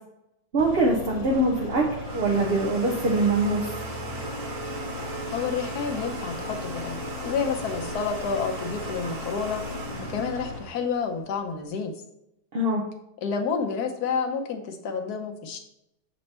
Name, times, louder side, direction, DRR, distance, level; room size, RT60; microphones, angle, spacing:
voice 1, 0.5-1.9 2.1-3.7 12.5-12.8, right 2 dB, 45° right, -1 dB, 0.8 m, -23 dB
sound 1, 0.6-10.6, left 3 dB, 85° left, 1.8 m, -37 dB
Domestic sounds home sounds, 0.9-11.6, right 3 dB, 80° right, 1.8 m, -38 dB
voice 2, 5.3-6.9 7.2-9.6 10.1-11.9 13.2-15.6, left 5 dB, 65° left, 4 dB, 1.4 m, -29 dB
7.2 x 4.4 x 4.2 m, 0.83 s
omnidirectional pair, 1.8 m